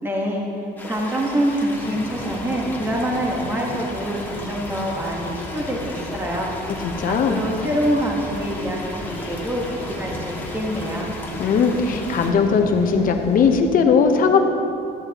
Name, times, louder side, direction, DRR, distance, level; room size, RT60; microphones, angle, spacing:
voice 1, 0.0-0.4 0.8-6.5 7.0-11.1, equal, 15° right, -2 dB, 1.4 m, -25 dB
sound 1, 0.8-12.3, left 2 dB, 10° left, 1.6 m, -36 dB
sound 2, 1.8-13.6, left 2 dB, 35° left, 1.4 m, -37 dB
voice 2, 6.8-7.4 11.4-14.4, left 5 dB, 55° left, 5 dB, 0.9 m, -18 dB
12.5 x 10.5 x 3.0 m, 2.7 s
cardioid pair, 110°, 17 cm